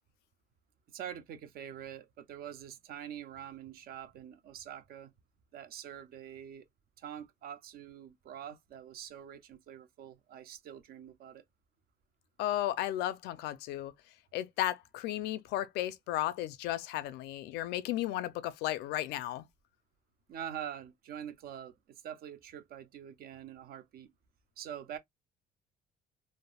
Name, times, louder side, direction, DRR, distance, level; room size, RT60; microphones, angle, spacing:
voice 1, 0.9-5.1 5.5-6.7 7.0-11.4 20.3-24.1 24.6-25.0, right 9 dB, 60° right, 0.5 m, -45 dB
voice 2, 12.4-13.9 14.3-19.4, left 14 dB, 85° left, 0.4 m, -34 dB
3.4 x 2.0 x 2.2 m
cardioid pair, 110°, 17 cm